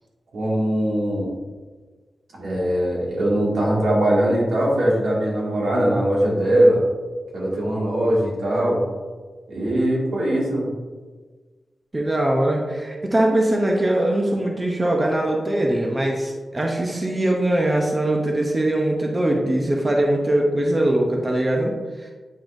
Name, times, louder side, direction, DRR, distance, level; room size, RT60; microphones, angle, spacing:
voice 1, 0.3-1.3 2.3-6.8 7.3-8.8 9.5-10.7, right 1 dB, 85° right, -5 dB, 2.1 m, -21 dB
voice 2, 11.9-22.1, right 1 dB, 25° right, 0 dB, 0.8 m, -21 dB
9.1 x 5.4 x 2.6 m, 1.4 s
wide cardioid pair, 140°, 0 cm